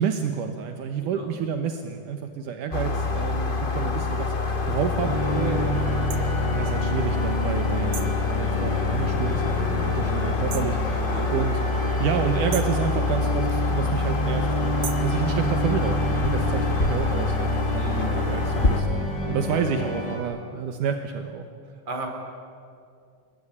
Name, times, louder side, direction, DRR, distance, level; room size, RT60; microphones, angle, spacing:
voice 1, 0.0-5.8 6.5-11.0 11.3-11.6 12.0-21.4, right 7 dB, 75° right, 6 dB, 2.7 m, -29 dB
sound 1, 2.7-18.8, left 3 dB, 75° left, 0.4 m, -25 dB
sound 2, 5.0-20.2, equal, 30° left, 5.7 m, -31 dB
voice 2, 5.5-5.9 11.1-11.3 17.7-18.1 21.8-22.1, right 2 dB, 35° right, 3 dB, 4.7 m, -36 dB
sound 3, 6.1-6.2 7.9-8.2 10.5-10.8 12.5-12.8 14.8-15.1, right 8 dB, 55° right, 1.5 m, -36 dB
27.0 x 21.0 x 9.8 m, 2.3 s
omnidirectional pair, 3.7 m